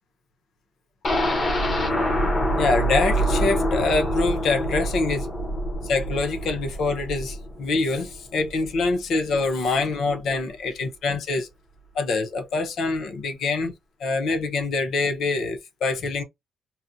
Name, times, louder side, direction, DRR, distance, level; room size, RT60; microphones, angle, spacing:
sound 1, 1.0-8.9 9.3-9.4 9.7-9.8, equal, 30° left, 0.7 m, -26 dB
voice 1, 2.5-5.3 5.8-11.5 11.9-13.7 14.0-16.2, left 3 dB, 60° left, 0.8 m, -25 dB
4.1 x 2.1 x 2.7 m
cardioid pair, 170°, 0 cm